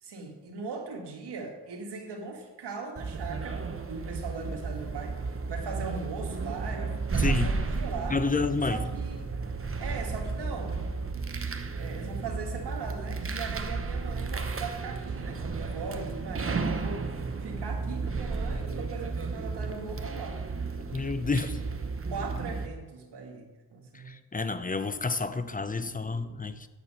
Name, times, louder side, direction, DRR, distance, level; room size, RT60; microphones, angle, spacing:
voice 1, 0.0-8.2 8.7-9.3 9.8-11.3 11.7-17.1 17.4-20.4 21.4-21.6 22.0-24.2, right 4 dB, 85° right, 2 dB, 1.7 m, -39 dB
sound 1, 3.0-22.7, right 4 dB, 35° right, 0.9 m, -33 dB
voice 2, 7.2-7.5 8.1-8.8 20.9-21.6 23.9-26.7, left 4 dB, 20° left, 11 dB, 0.8 m, -30 dB
8.5 x 8.2 x 5.5 m, 1.2 s
cardioid pair, 55°, 40 cm